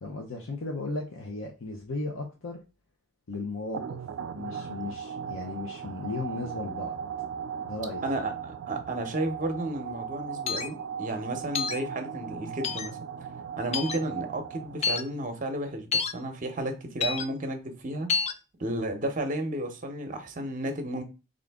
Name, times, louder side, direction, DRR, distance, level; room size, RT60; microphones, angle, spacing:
voice 1, 0.0-2.6 3.3-4.0 4.3-7.0 7.6-8.0, left 3 dB, 80° left, 0.7 m, -35 dB
sound 1, 3.7-15.1, right 7 dB, 80° right, 0.3 m, -38 dB
voice 2, 8.0-13.0 13.6-18.1 18.6-21.0, right 1 dB, 40° right, 0.7 m, -32 dB
sound 2, 10.5-10.7 11.6-11.8 12.6-12.9 13.7-14.0 14.8-15.0 15.9-16.1 17.0-17.3 18.1-18.3, left 6 dB, 35° left, 0.3 m, -28 dB
3.7 x 2.5 x 3.4 m
head